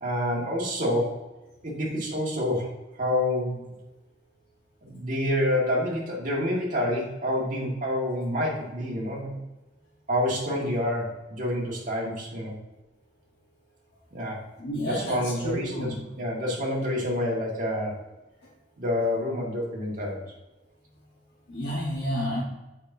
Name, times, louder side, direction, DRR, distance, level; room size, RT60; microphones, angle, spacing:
voice 1, 0.0-1.2 1.6-2.7 3.0-3.8 4.8-9.4 10.1-12.6 14.1-14.4 14.9-15.9 16.2-18.0 18.8-20.2, left 1 dB, 45° right, -4 dB, 1.9 m, -28 dB
voice 2, 14.6-16.1 21.5-22.4, equal, 65° left, -7 dB, 1.4 m, -30 dB
6.7 x 5.5 x 2.7 m, 1.0 s
head